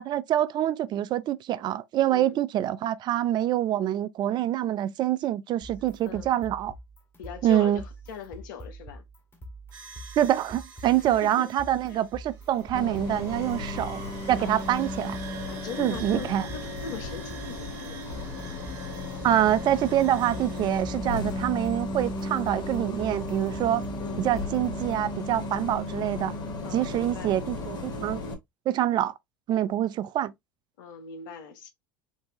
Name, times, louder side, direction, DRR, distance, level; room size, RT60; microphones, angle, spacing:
voice 1, 0.0-6.7 7.4-7.8 10.2-14.0 14.3-15.2 15.8-16.4 19.2-23.8 24.2-26.3 26.7-28.2 28.7-29.1 29.5-30.3, right 12 dB, 40° right, 0.4 m, -26 dB
sound 1, 5.6-25.2, right 1 dB, 25° left, 1.8 m, -45 dB
voice 2, 7.2-9.0 10.9-11.5 11.9-12.0 14.4-14.6 15.5-18.0 24.0-24.3 26.6-27.4 30.8-31.7, left 6 dB, 70° left, 1.0 m, -40 dB
sound 2, 9.7-20.8, right 3 dB, 65° right, 1.1 m, -45 dB
Bus, 12.7-28.3, left 2 dB, 40° left, 1.4 m, -35 dB
4.6 x 2.7 x 2.9 m
hypercardioid pair, 80°, 11 cm